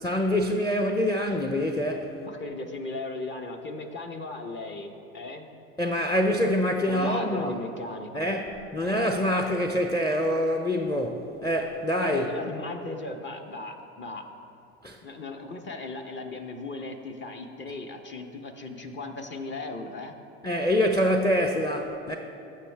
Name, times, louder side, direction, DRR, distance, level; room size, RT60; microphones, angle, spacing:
voice 1, 0.0-2.1 5.8-7.5 8.1-12.3 14.8-15.0 20.4-22.2, equal, 10° left, 3 dB, 0.7 m, -25 dB
voice 2, 2.2-5.6 6.9-8.2 12.0-14.2 15.0-20.1, left 2 dB, 35° left, 4 dB, 1.0 m, -37 dB
15.5 x 6.6 x 3.5 m, 2.7 s
hypercardioid pair, 80°, 34 cm